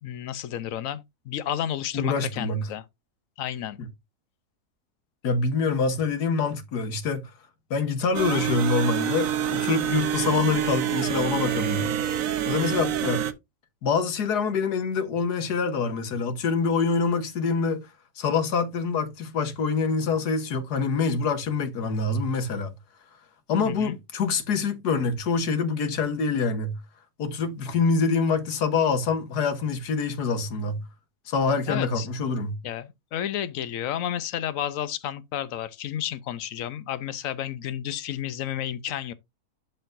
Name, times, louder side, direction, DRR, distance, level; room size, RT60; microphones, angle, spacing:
voice 1, 0.0-2.8 3.4-3.8 23.6-24.0 31.7-32.1 32.6-39.1, left 10 dB, 65° left, 1.1 m, -31 dB
voice 2, 1.9-2.6 3.8-3.9 5.2-7.2 7.7-11.9 12.4-13.2 13.8-17.9 18.2-22.7 23.5-26.8 27.2-30.8 31.3-32.6, left 4 dB, 85° left, 1.7 m, -25 dB
sound 1, 8.1-13.3, right 10 dB, 65° right, 1.1 m, -27 dB
12.0 x 4.3 x 2.6 m
omnidirectional pair, 1.7 m